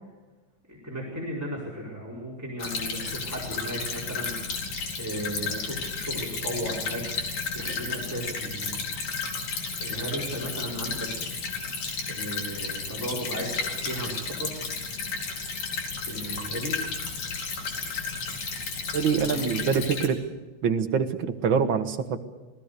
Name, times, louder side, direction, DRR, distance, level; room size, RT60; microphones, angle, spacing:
voice 1, 0.7-4.4 5.0-7.0 7.5-8.7 9.8-11.3 12.1-14.5 16.0-16.8 19.2-19.8, right 1 dB, 5° right, -3 dB, 4.5 m, -35 dB
Stream / Trickle dribble, 2.6-20.1, left 4 dB, 85° left, 4.3 m, -33 dB
voice 2, 18.9-20.2 20.6-22.2, right 6 dB, 50° right, 6 dB, 1.8 m, -25 dB
28.0 x 18.5 x 6.8 m, 1.2 s
omnidirectional pair, 3.3 m